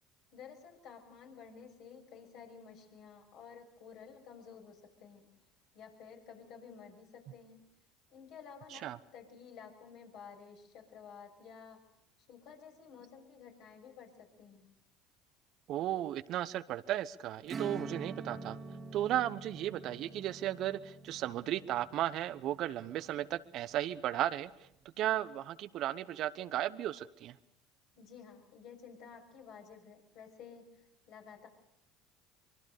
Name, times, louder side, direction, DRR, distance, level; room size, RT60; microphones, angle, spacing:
voice 1, 0.3-5.3 5.7-7.6 8.1-11.8 12.3-14.7 28.0-30.8 31.1-31.5, left 6 dB, 60° left, 2 dB, 6.7 m, -52 dB
voice 2, 15.7-18.6 18.9-24.5 25.0-27.3, right 13 dB, 55° right, 15 dB, 0.9 m, -35 dB
Acoustic guitar / Strum, 17.5-23.7, right 3 dB, 35° right, 2.2 m, -46 dB
24.5 x 24.0 x 6.7 m, 0.78 s
hypercardioid pair, 70°, 0 cm